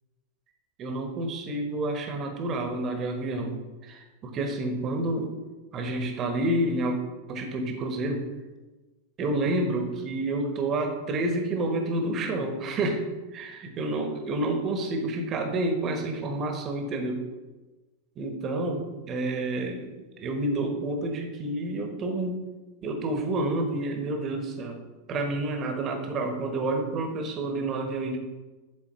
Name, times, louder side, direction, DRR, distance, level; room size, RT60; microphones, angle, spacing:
voice 1, 0.8-5.3 5.7-7.0 7.3-8.2 9.2-13.1 13.3-13.5 13.8-17.2 18.2-19.9 20.2-22.4 22.8-24.8 25.1-28.2, right 2 dB, 30° right, 3 dB, 1.1 m, -29 dB
11.0 x 4.1 x 3.1 m, 1.2 s
figure-of-eight pair, 90°, 0 cm